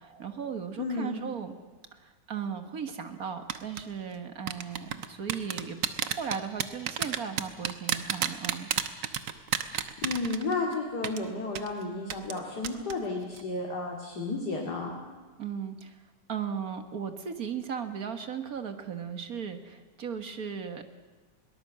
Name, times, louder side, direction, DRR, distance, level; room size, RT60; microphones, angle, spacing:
voice 1, 0.0-1.5 1.9-8.7 15.4-16.0 16.3-20.8, right 7 dB, 55° right, 8 dB, 1.9 m, -37 dB
voice 2, 0.8-1.2 10.0-14.9, left 3 dB, 65° left, -1 dB, 3.0 m, -32 dB
sound 1, 3.5-3.8 4.5-10.7 11.0-11.2 11.6-11.7 12.1-12.4 12.6-12.9 13.2-13.4, right 9 dB, 85° right, 1.7 m, -30 dB
22.0 x 19.5 x 7.5 m, 1.4 s
omnidirectional pair, 1.9 m